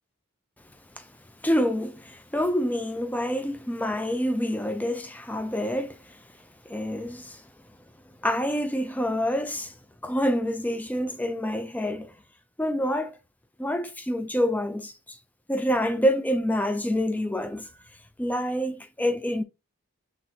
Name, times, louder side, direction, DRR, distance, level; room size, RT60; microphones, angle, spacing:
voice 1, 1.4-6.2 6.7-7.4 8.2-9.7 10.0-12.1 12.6-13.2 13.6-15.2 15.5-17.7 18.2-19.4, equal, 5° left, 0.3 m, -27 dB
5.6 x 3.1 x 2.8 m
head